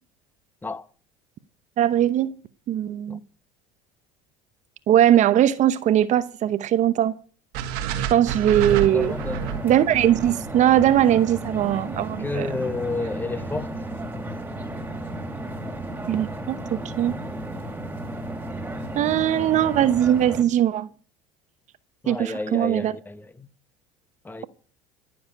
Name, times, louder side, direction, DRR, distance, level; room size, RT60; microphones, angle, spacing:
voice 1, 1.8-2.3 2.7-3.2 4.9-7.1 8.1-9.1 9.6-12.5 16.1-17.2 19.0-20.9 22.1-22.9, right 11 dB, 50° right, 0.9 m, -20 dB
sound 1, 7.5-11.7, right 8 dB, 70° right, 1.5 m, -30 dB
sound 2, 8.7-20.4, right 1 dB, 10° right, 2.9 m, -34 dB
voice 2, 8.9-9.5 12.2-13.7 22.0-23.5 24.2-24.4, left 3 dB, 10° left, 1.0 m, -31 dB
14.5 x 7.2 x 8.9 m
supercardioid pair, 90°, 16 cm